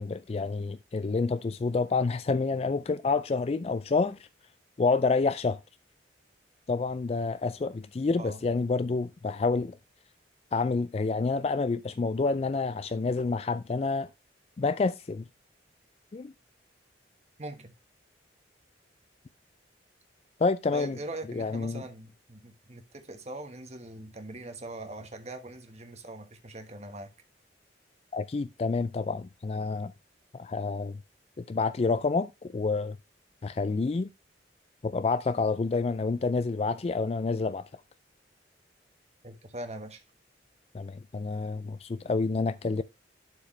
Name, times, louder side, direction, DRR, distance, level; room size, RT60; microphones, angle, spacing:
voice 1, 0.0-4.3 4.8-5.6 6.7-9.8 10.5-14.1 14.6-15.2 16.1-16.3 20.4-21.0 21.3-21.8 28.1-29.9 30.3-31.0 31.5-33.0 33.4-34.1 34.8-37.7 40.7-42.8, left 4 dB, 35° left, 0.3 m, -28 dB
voice 2, 17.4-17.7 20.7-27.1 39.2-40.0, right 2 dB, 35° right, 1.3 m, -42 dB
11.5 x 4.9 x 3.2 m
head